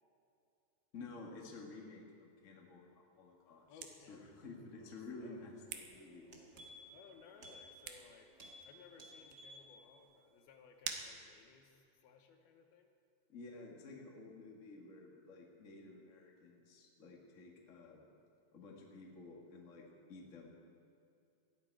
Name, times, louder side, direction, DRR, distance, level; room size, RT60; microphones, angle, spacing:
voice 1, 0.9-3.6 4.1-6.3 13.3-18.0 18.5-20.5, left 3 dB, 40° left, -1 dB, 1.1 m, -52 dB
sound 1, 3.4-12.0, right 7 dB, 70° right, 2.6 m, -52 dB
voice 2, 3.7-5.5 6.9-12.9, left 5 dB, 75° left, 5 dB, 2.7 m, -61 dB
sound 2, 5.7-5.8 6.1-7.0 7.4-7.6 7.9-8.1 8.3-8.6 8.9-9.7 10.0-10.1, equal, 50° right, 1.2 m, -55 dB
18.5 x 13.0 x 4.8 m, 2.6 s
omnidirectional pair, 4.6 m